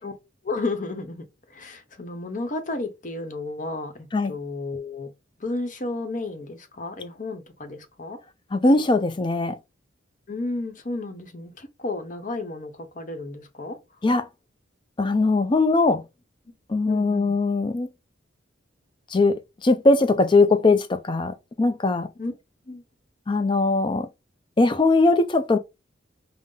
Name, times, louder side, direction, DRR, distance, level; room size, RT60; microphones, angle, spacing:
voice 1, 0.4-3.9 4.3-5.1 5.4-8.2 10.3-13.8 16.9-17.4 22.2-22.3 22.7-22.8, left 2 dB, 45° left, 0.8 m, -32 dB
voice 2, 8.5-9.6 14.0-14.3 15.0-16.0 16.7-17.9 19.1-22.1 23.3-24.1 24.6-25.6, left 3 dB, 25° left, 0.4 m, -20 dB
5.4 x 2.0 x 3.7 m
head